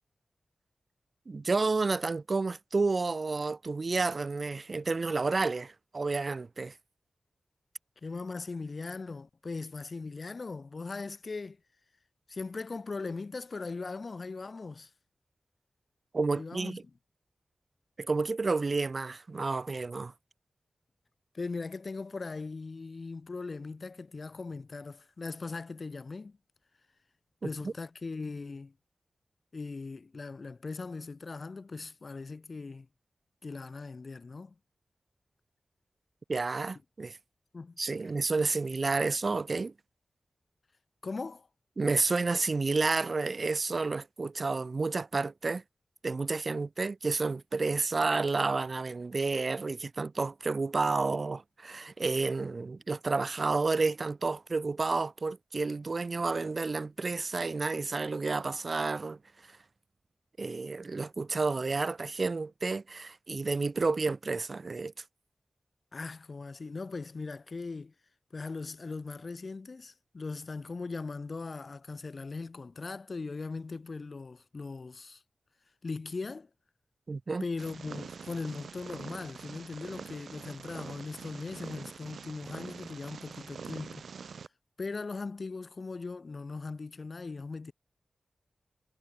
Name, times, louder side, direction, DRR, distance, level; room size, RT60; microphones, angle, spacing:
voice 1, 1.3-6.7 16.1-16.8 18.0-20.1 27.4-27.7 36.3-37.2 37.8-39.7 41.8-45.6 46.0-59.2 60.4-64.9 77.1-77.4, right 3 dB, 50° right, 0.3 m, -30 dB
voice 2, 8.0-11.6 12.3-14.9 16.3-16.8 21.3-26.4 27.4-28.7 29.5-32.9 33.4-34.6 37.5-37.8 41.0-41.5 65.9-67.9 68.3-75.2 75.8-76.5 77.4-84.1 84.8-87.7, left 4 dB, 55° left, 5.2 m, -39 dB
Purr, 77.6-84.5, right 6 dB, 85° right, 4.0 m, -45 dB
cardioid pair, 65°, 0 cm